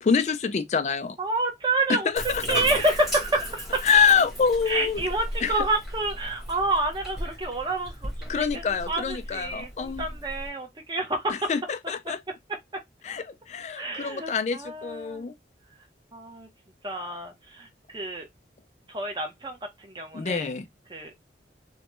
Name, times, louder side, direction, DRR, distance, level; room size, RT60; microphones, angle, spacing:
voice 1, 0.0-1.2 1.9-2.6 3.8-5.0 5.4-5.7 8.3-10.1 11.3-12.2 13.0-15.3 20.1-20.7, left 6 dB, 40° left, 0.3 m, -25 dB
voice 2, 1.2-2.1 2.5-3.8 4.7-11.5 13.8-15.3 16.1-16.5 16.8-18.3 18.9-20.5 20.9-21.1, right 2 dB, 25° right, 0.8 m, -29 dB
Bathtub (filling or washing), 2.2-10.5, equal, ahead, 1.0 m, -36 dB
3.0 x 2.2 x 2.9 m
head